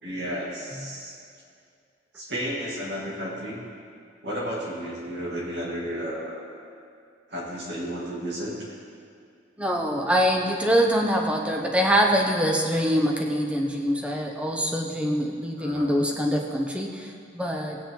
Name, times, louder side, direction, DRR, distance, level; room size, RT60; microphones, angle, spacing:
voice 1, 0.0-1.1 2.1-3.6 4.2-6.4 7.3-8.6 15.5-16.0, equal, 60° right, -5 dB, 2.7 m, -32 dB
voice 2, 9.6-17.8, equal, 5° right, 1 dB, 0.9 m, -24 dB
16.5 x 8.8 x 3.9 m, 2.3 s
head